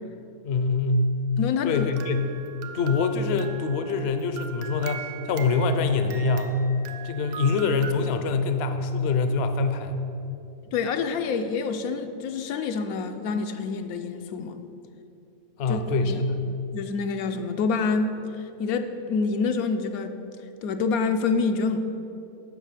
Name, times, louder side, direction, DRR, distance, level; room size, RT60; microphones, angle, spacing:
voice 1, 0.4-1.1 1.6-2.3 2.7-6.6 7.0-9.9 15.6-16.3, left 4 dB, 60° left, 8 dB, 0.7 m, -24 dB
voice 2, 1.4-1.9 10.7-14.6 15.7-16.2 16.7-20.2 20.6-21.8, left 4 dB, 80° left, 7 dB, 1.1 m, -27 dB
sound 1, 1.7-7.9, right 7 dB, 85° right, 1.2 m, -40 dB
7.2 x 5.7 x 7.5 m, 2.7 s
omnidirectional pair, 1.5 m